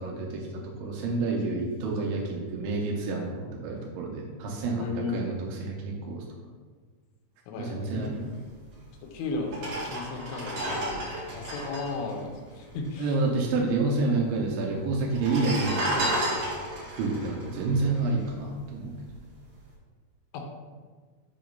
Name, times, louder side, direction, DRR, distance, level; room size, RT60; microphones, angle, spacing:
voice 1, 0.0-6.2 7.6-8.3 13.0-16.1 16.9-18.9, right 3 dB, 85° right, -1 dB, 3.2 m, -29 dB
voice 2, 4.7-5.2 7.5-8.1 9.1-13.1 20.3-20.5, left 3 dB, 85° left, 2 dB, 3.2 m, -35 dB
sound 1, 8.8-8.9 9.4-13.1 13.4-13.5 13.7-14.4 15.0-18.5 19.0-19.2, right 1 dB, 70° right, 1.5 m, -32 dB
7.7 x 2.9 x 5.2 m, 1.5 s
omnidirectional pair, 5.3 m